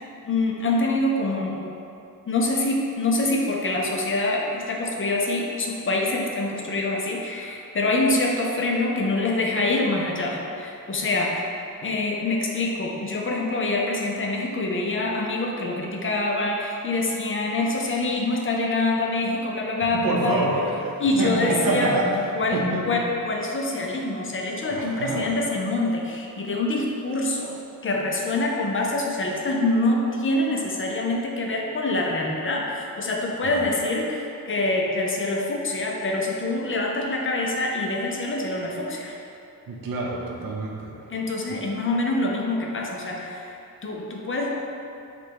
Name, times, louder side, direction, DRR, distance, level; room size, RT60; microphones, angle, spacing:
voice 1, 0.2-1.6 2.3-11.3 11.8-20.4 21.0-22.0 22.3-27.6 27.8-39.2 41.1-43.5 43.8-44.5, left 2 dB, 35° left, -1 dB, 0.4 m, -25 dB
voice 2, 20.0-22.1 22.5-23.0 24.7-25.3 33.4-33.7 39.7-40.9 41.5-41.6, right 2 dB, 70° right, -2 dB, 0.7 m, -27 dB
5.0 x 2.2 x 4.5 m, 2.6 s
wide cardioid pair, 175°, 36 cm